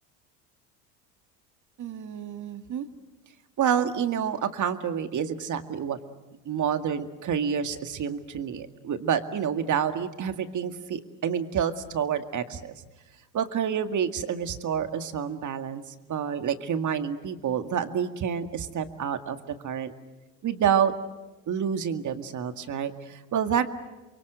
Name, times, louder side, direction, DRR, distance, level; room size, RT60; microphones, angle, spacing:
voice 1, 1.8-2.9 3.6-6.0 6.5-12.8 13.3-19.4 19.6-19.9 20.4-20.9 21.5-23.7, right 8 dB, 40° right, 9 dB, 2.0 m, -28 dB
28.5 x 23.5 x 7.9 m, 1.1 s
hypercardioid pair, 80°, 48 cm